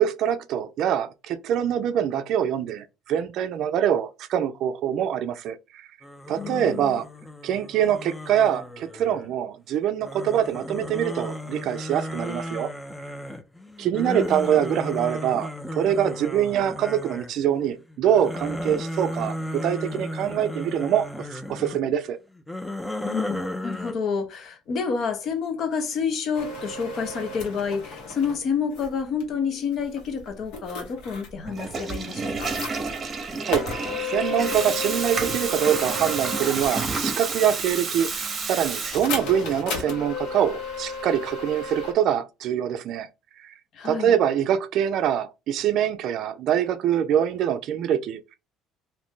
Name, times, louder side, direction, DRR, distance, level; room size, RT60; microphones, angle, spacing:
voice 1, 0.0-5.8 6.3-7.1 7.4-12.7 13.8-22.2 33.4-33.7 34.0-43.1 43.4-43.5 43.8-48.3, right 9 dB, 60° right, 0.4 m, -24 dB
sound 1, 6.0-9.4 10.0-17.5 17.9-21.8 22.4-23.9, left 1 dB, 5° left, 0.4 m, -34 dB
voice 2, 6.4-7.0 23.0-32.5 43.7-44.1, left 6 dB, 50° left, 0.7 m, -29 dB
sound 2, 26.3-28.4 28.7-29.2 29.7-31.4 32.3-33.0 33.5-36.9 38.9-41.9, left 3 dB, 80° left, 1.3 m, -33 dB
Water tap faucet / Toilet flush, 31.4-39.5, right 4 dB, 30° right, 0.8 m, -30 dB
2.6 x 2.6 x 3.5 m
cardioid pair, 125°, 0 cm